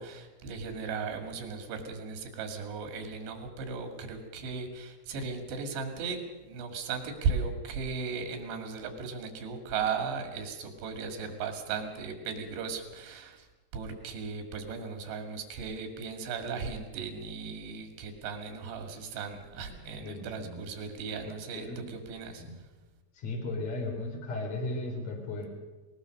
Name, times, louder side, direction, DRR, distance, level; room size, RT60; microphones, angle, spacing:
voice 1, 0.0-6.2 6.5-13.5 13.7-22.4, right 5 dB, 85° right, 5 dB, 4.6 m, -36 dB
voice 2, 19.8-20.6 21.3-21.9 22.4-22.5 23.2-25.5, left 2 dB, 40° left, 1 dB, 5.2 m, -36 dB
20.5 x 19.5 x 6.5 m, 1.2 s
omnidirectional pair, 4.8 m